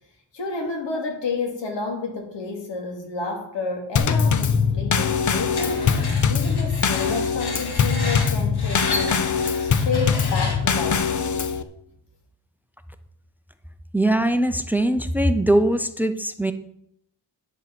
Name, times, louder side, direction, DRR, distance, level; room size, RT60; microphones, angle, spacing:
voice 1, 0.3-5.8 6.3-9.2 9.6-11.3, left 4 dB, 85° left, 1 dB, 2.9 m, -30 dB
Drum kit / Snare drum / Bass drum, 4.0-11.6, left 6 dB, 45° left, 0.7 m, -22 dB
Screech, 5.5-10.8, left 2 dB, 60° left, 2.2 m, -32 dB
voice 2, 13.9-16.5, right 1 dB, 5° right, 11 dB, 0.5 m, -21 dB
10.0 x 7.2 x 6.0 m, 0.74 s
wide cardioid pair, 150°, 42 cm